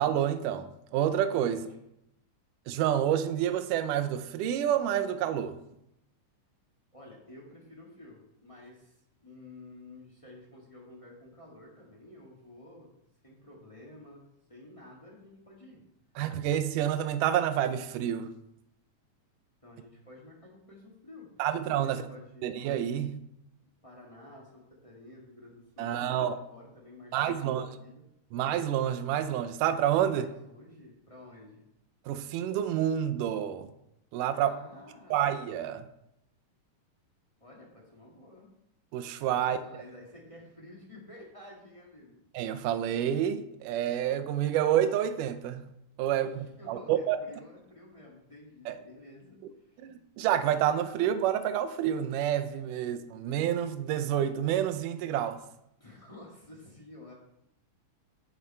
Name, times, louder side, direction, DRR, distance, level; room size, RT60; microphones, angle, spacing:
voice 1, 0.0-1.7 2.7-5.6 16.2-18.3 21.4-22.0 22.4-23.2 25.8-26.3 27.1-27.7 28.3-30.3 32.1-33.7 34.1-34.6 35.1-35.9 38.9-39.6 42.3-45.7 46.0-47.2 48.7-48.8 49.8-55.4, right 10 dB, 80° right, 10 dB, 2.1 m, -28 dB
voice 2, 6.9-12.9 13.2-14.2 14.5-15.8 19.6-22.6 23.8-28.0 30.1-31.6 34.4-35.3 37.4-38.5 39.4-42.2 46.2-50.0 55.8-57.1, left 1 dB, 20° left, -4 dB, 0.9 m, -51 dB
8.2 x 7.0 x 4.4 m, 0.82 s
omnidirectional pair, 3.9 m